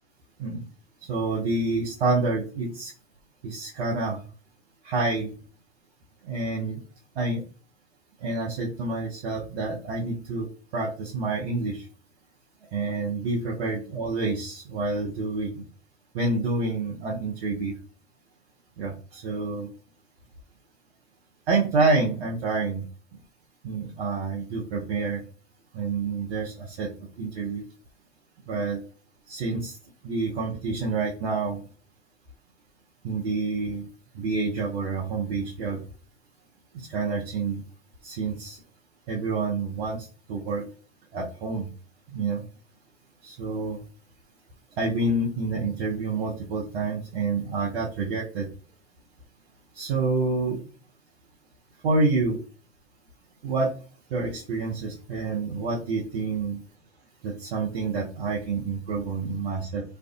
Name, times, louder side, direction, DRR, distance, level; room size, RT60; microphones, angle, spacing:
voice 1, 1.1-2.9 3.4-4.2 4.8-5.3 6.2-6.8 7.2-7.4 8.2-10.5 10.7-11.8 12.7-15.5 16.1-17.8 18.8-19.7 21.5-22.8 23.6-25.2 25.7-26.9 27.2-27.6 28.5-28.8 29.3-29.8 30.0-31.6 33.0-33.9 34.1-35.8 36.7-37.6 38.0-38.6 39.1-40.6 41.1-41.7 42.1-42.4 43.2-43.8 44.8-48.5 49.7-50.6 51.8-52.4 53.4-53.7 54.1-56.6 57.2-59.8, right 3 dB, 65° right, -4 dB, 0.7 m, -28 dB
2.5 x 2.3 x 2.3 m, 0.38 s
figure-of-eight pair, 85°, 35 cm